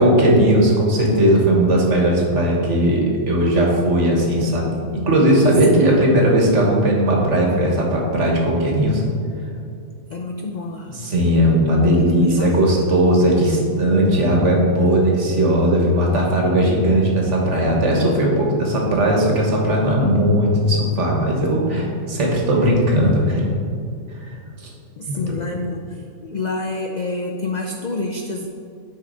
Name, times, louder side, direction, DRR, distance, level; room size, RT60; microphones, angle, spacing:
voice 1, 0.0-9.0 10.9-23.5 24.2-24.3 25.1-25.2, right 1 dB, 60° right, -1 dB, 1.6 m, -17 dB
voice 2, 10.1-10.9 11.4-12.8 25.0-28.5, left 2 dB, 80° left, 2 dB, 0.4 m, -28 dB
9.3 x 5.2 x 4.0 m, 2.5 s
omnidirectional pair, 1.5 m